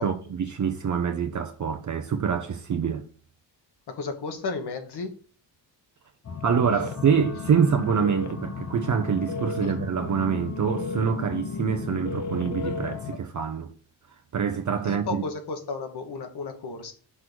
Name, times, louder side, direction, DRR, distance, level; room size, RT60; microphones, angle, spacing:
voice 1, 0.0-3.1 6.4-13.7 14.3-15.2, right 7 dB, 40° right, 0.8 m, -25 dB
voice 2, 3.9-5.1 9.6-9.7 14.9-16.9, left 4 dB, 60° left, 1.6 m, -33 dB
sound 1, 6.2-13.2, left 4 dB, 35° left, 1.1 m, -33 dB
6.3 x 3.8 x 6.2 m
cardioid pair, 110°, 46 cm